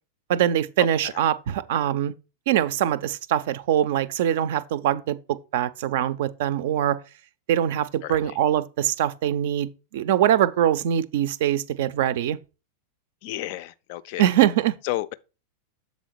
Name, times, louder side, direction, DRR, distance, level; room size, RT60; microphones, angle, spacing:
voice 1, 0.3-2.1 2.5-7.0 7.5-12.4 14.2-14.8, right 11 dB, 55° right, 0.4 m, -23 dB
voice 2, 8.0-8.4 13.2-14.2 14.8-15.1, left 16 dB, 50° left, 0.4 m, -32 dB
7.4 x 4.1 x 4.4 m
figure-of-eight pair, 90°, 0 cm